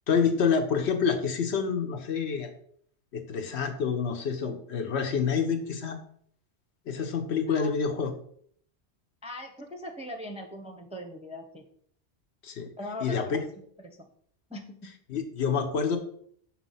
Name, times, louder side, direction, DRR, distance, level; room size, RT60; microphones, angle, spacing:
voice 1, 0.1-2.5 3.1-6.0 6.9-8.1 12.4-12.7 13.0-13.4 15.1-16.0, left 6 dB, 75° left, 6 dB, 1.1 m, -27 dB
voice 2, 9.2-11.7 12.8-13.4 13.8-14.0 14.5-14.9, left 1 dB, 10° right, 3 dB, 0.4 m, -40 dB
6.2 x 3.0 x 5.5 m, 0.63 s
omnidirectional pair, 1.1 m